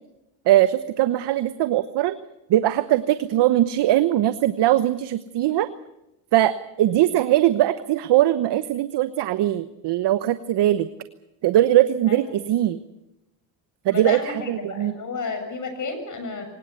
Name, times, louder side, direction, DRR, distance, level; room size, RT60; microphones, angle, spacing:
voice 1, 0.5-2.2 2.5-5.7 6.3-10.9 11.4-12.8 13.8-14.9, right 13 dB, 55° right, 12 dB, 1.1 m, -20 dB
voice 2, 12.1-12.4 13.9-16.5, left 4 dB, 35° left, 7 dB, 7.4 m, -31 dB
23.5 x 19.5 x 8.3 m, 0.90 s
supercardioid pair, 100°, 49 cm